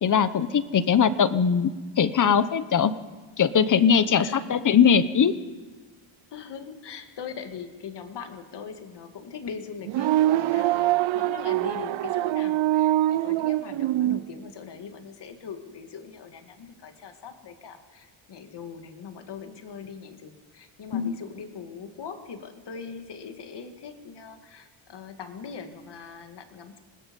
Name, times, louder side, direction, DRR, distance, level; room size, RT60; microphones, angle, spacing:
voice 1, 0.0-2.9 3.4-5.3 20.9-21.1, left 7 dB, 40° left, 14 dB, 1.0 m, -21 dB
voice 2, 3.9-4.4 6.3-26.8, left 6 dB, 55° left, 6 dB, 2.1 m, -41 dB
sound 1, 9.8-14.2, right 14 dB, 65° right, 0.6 m, -24 dB
26.5 x 19.5 x 5.4 m, 1.4 s
cardioid pair, 130°, 49 cm